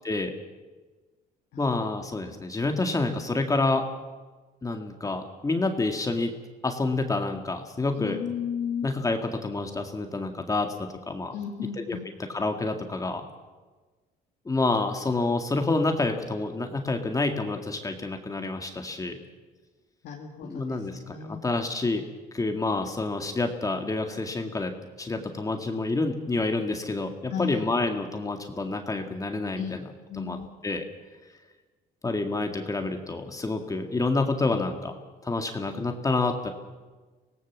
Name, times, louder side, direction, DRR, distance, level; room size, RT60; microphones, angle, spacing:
voice 1, 1.6-3.8 4.6-6.3 6.6-8.2 8.8-11.3 11.8-12.0 12.3-13.2 14.5-19.2 20.4-22.0 22.3-24.7 25.0-29.9 30.1-30.4 30.6-30.8 32.0-34.9 35.2-36.5, left 3 dB, 20° left, 4 dB, 2.1 m, -28 dB
voice 2, 8.0-8.9 11.3-12.1 20.0-21.4 27.3-27.6 29.6-29.8 30.1-30.5, left 7 dB, 75° left, 0 dB, 2.3 m, -34 dB
25.0 x 17.5 x 7.4 m, 1.3 s
cardioid pair, 110°, 17 cm